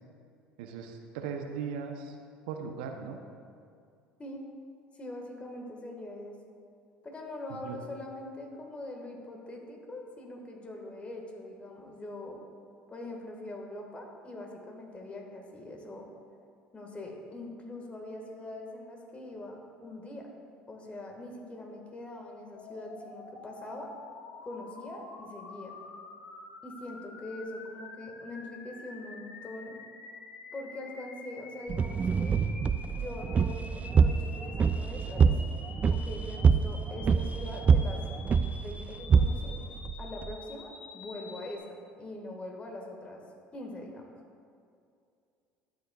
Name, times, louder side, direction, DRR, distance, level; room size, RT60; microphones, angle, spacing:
voice 1, 0.6-2.2 2.5-3.2 7.6-7.8, right 6 dB, 75° right, 5 dB, 0.6 m, -38 dB
voice 2, 4.9-6.4 7.0-12.4 12.9-16.1 16.7-20.3 20.7-23.9 24.4-25.7 26.6-29.8 30.5-32.4 32.9-35.3 35.9-38.0 38.6-39.6 40.0-41.6 42.0-43.2 43.5-44.1, left 1 dB, 25° left, 1 dB, 1.6 m, -42 dB
sound 1, 22.5-41.6, left 4 dB, 75° left, 0.9 m, -48 dB
sound 2, 31.7-40.4, right 6 dB, 30° right, 0.3 m, -26 dB
12.0 x 7.2 x 2.3 m, 2.4 s
hypercardioid pair, 70°, 5 cm